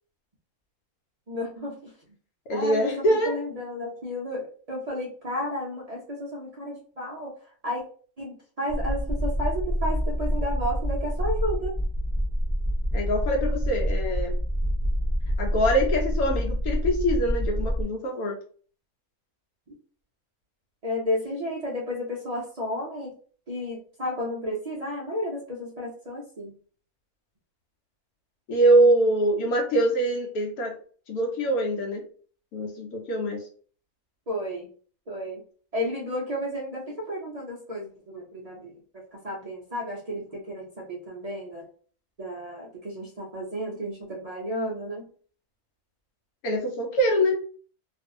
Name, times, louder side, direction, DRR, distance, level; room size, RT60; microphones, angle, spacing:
voice 1, 1.3-1.9 2.5-2.9 3.3-7.3 7.6-7.8 8.2-11.7 20.8-23.1 23.5-26.5 34.3-34.7 35.1-35.4 35.7-38.8 39.1-41.7 42.2-45.1, left 1 dB, 70° right, -4 dB, 0.3 m, -32 dB
voice 2, 2.5-3.4 12.9-14.3 15.4-18.4 28.5-30.7 31.1-32.0 32.5-33.4 46.4-47.4, right 1 dB, 90° left, 0 dB, 1.2 m, -24 dB
sound 1, 8.7-17.8, equal, 5° right, 0.5 m, -27 dB
2.6 x 2.5 x 2.5 m, 0.43 s
omnidirectional pair, 1.5 m